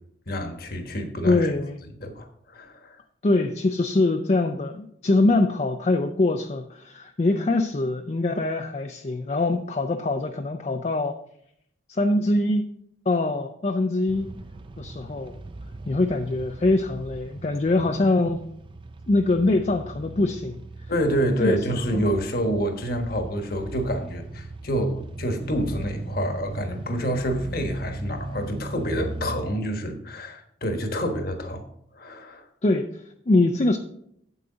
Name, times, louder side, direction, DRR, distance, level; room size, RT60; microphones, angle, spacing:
voice 1, 0.3-1.5 2.0-3.0 20.9-31.7 31.9-32.5, equal, 50° left, 6 dB, 1.3 m, -28 dB
voice 2, 1.2-1.8 3.2-11.2 11.9-12.7 13.1-14.3 14.8-15.4 15.9-18.4 19.1-20.6 21.4-21.6 21.9-22.0 32.6-33.8, left 2 dB, 35° left, 6 dB, 0.4 m, -23 dB
sound 1, 14.1-29.4, right 2 dB, 25° right, 0.4 m, -38 dB
8.5 x 8.1 x 3.9 m, 0.73 s
head